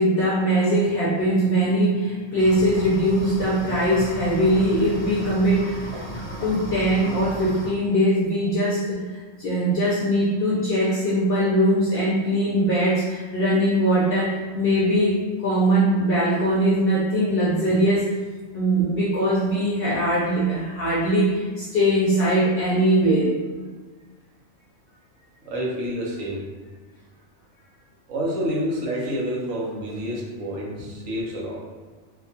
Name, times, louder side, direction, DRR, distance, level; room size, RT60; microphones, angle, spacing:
voice 1, 0.0-18.1 18.5-23.3, right 1 dB, 60° left, -8 dB, 0.7 m, -21 dB
sound 1, 2.4-7.7, equal, 20° left, 0.3 m, -35 dB
voice 2, 25.5-26.4 28.1-31.5, equal, 85° right, -3 dB, 1.1 m, -28 dB
2.8 x 2.3 x 2.7 m, 1.4 s
omnidirectional pair, 1.3 m